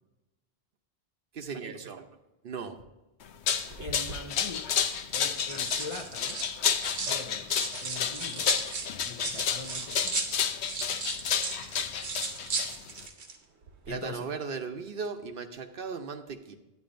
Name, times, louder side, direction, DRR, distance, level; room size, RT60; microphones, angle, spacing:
voice 1, 1.3-2.1 2.4-2.8 13.9-16.6, right 5 dB, 65° right, 6 dB, 0.8 m, -37 dB
sound 1, 3.2-13.1, left 7 dB, 85° left, 0.9 m, -30 dB
sound 2, 3.7-4.2 5.1-7.2 7.5-13.4 13.6-13.9, right 4 dB, 85° right, 1.2 m, -36 dB
voice 2, 3.8-4.7 5.1-6.4 7.0-7.5 7.8-8.5 9.0-10.3 13.9-14.3, left 3 dB, 40° left, 4 dB, 0.5 m, -42 dB
10.5 x 9.5 x 2.5 m, 1.0 s
omnidirectional pair, 1.1 m